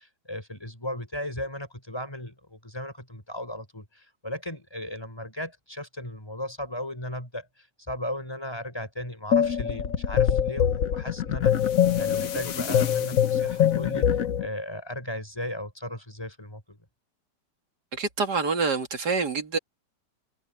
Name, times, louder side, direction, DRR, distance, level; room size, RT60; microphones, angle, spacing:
voice 1, 0.0-16.8, left 1 dB, 15° left, 5.0 m, -36 dB
sound 1, 9.3-14.5, left 9 dB, 55° left, 1.3 m, -23 dB
voice 2, 17.9-19.6, right 4 dB, 70° right, 2.8 m, -26 dB
omnidirectional pair, 1.9 m